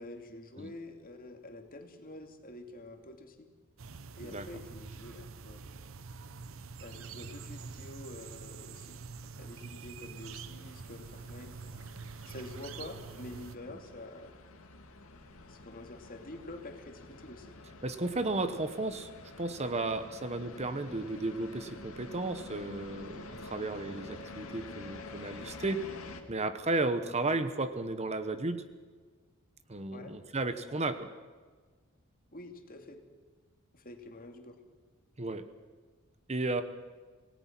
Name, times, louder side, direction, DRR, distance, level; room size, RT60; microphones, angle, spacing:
voice 1, 0.0-3.5 4.1-5.6 6.8-9.0 9.4-11.6 12.3-14.3 15.5-17.6 29.9-30.2 32.3-33.0 33.7-34.6, left 1 dB, 45° left, 5 dB, 2.5 m, -47 dB
sound 1, 3.8-13.6, right 4 dB, 70° right, 0.8 m, -46 dB
sound 2, 10.4-26.2, left 2 dB, 80° left, 2.2 m, -48 dB
voice 2, 17.8-19.1 19.4-25.8 26.3-28.6 29.7-31.1 35.2-35.4 36.3-36.6, right 2 dB, 30° right, 10 dB, 1.1 m, -33 dB
26.5 x 18.5 x 6.1 m, 1.4 s
head